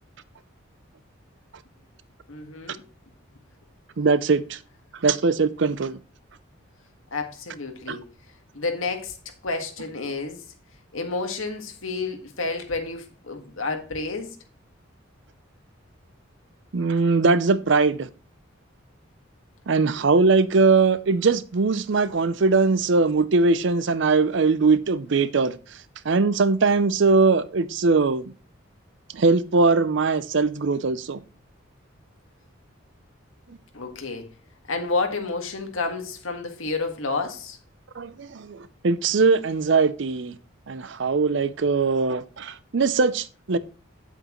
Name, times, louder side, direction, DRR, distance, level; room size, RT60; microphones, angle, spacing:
voice 1, 2.3-2.8 7.1-8.0 8.5-9.2 9.4-10.4 10.9-14.4 33.7-34.3 34.7-37.6, left 3 dB, 75° left, 1.7 m, -30 dB
voice 2, 4.0-4.6 5.0-6.0 7.9-8.0 16.7-18.1 19.7-25.6 26.0-28.3 29.1-31.2 38.0-40.4 40.7-43.6, right 4 dB, 60° right, 0.5 m, -21 dB
8.5 x 8.0 x 3.0 m
head